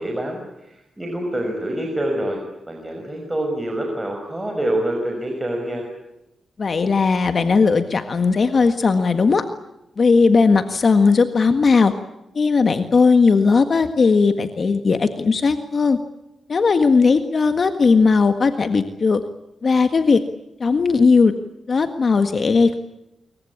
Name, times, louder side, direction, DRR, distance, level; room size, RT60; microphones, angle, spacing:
voice 1, 0.0-2.4 2.7-5.9, right 1 dB, 10° right, 2 dB, 5.7 m, -26 dB
voice 2, 6.6-9.4 10.0-11.9 12.4-16.0 16.5-19.2 19.6-20.2 20.6-21.3 21.7-22.8, left 4 dB, 45° left, 8 dB, 1.6 m, -17 dB
26.5 x 23.5 x 8.6 m, 0.90 s
wide cardioid pair, 120°, 0 cm